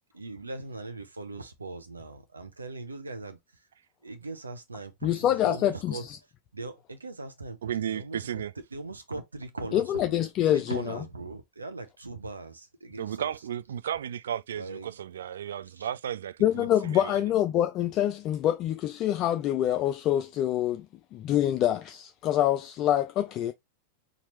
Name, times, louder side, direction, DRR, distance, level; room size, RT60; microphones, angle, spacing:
voice 1, 0.1-3.7 4.0-6.1 6.5-13.3 14.5-15.0 15.6-15.9, right 3 dB, 80° right, 0.7 m, -40 dB
voice 2, 5.0-6.0 9.7-10.8 16.4-20.9 21.1-23.5, left 11 dB, 35° left, 0.3 m, -26 dB
voice 3, 7.6-8.5 13.0-17.2, right 9 dB, 65° right, 0.3 m, -34 dB
4.3 x 2.7 x 3.1 m
figure-of-eight pair, 90°, 0 cm